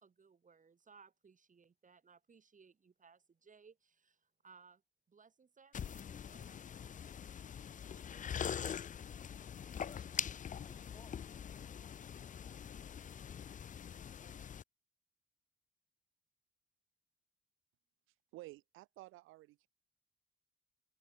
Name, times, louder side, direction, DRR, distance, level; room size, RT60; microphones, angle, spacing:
voice 1, 0.0-4.8 5.1-6.6, right 5 dB, 40° right, 1.4 m, -63 dB
sound 1, 5.7-14.6, left 8 dB, 40° left, 0.5 m, -44 dB
voice 2, 9.2-12.0, left 2 dB, 20° left, 2.2 m, -66 dB
voice 3, 18.3-19.7, right 18 dB, 85° right, 0.6 m, -53 dB
open air
supercardioid pair, 55°, 20 cm